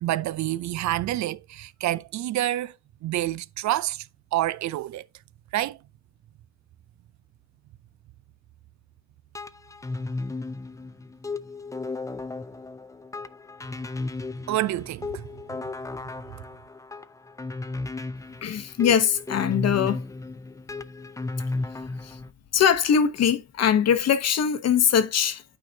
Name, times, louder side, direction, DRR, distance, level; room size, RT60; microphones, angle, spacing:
voice 1, 0.0-2.7 3.0-4.1 4.3-5.0 5.5-5.8 14.5-15.2 16.3-16.4, right 15 dB, 70° right, 0.5 m, -27 dB
sound 1, 9.3-22.3, left 3 dB, 10° left, 0.4 m, -34 dB
voice 2, 18.4-20.0 22.0-22.2 22.5-25.4, left 8 dB, 55° left, 0.9 m, -22 dB
8.7 x 4.7 x 2.7 m
cardioid pair, 90°, 30 cm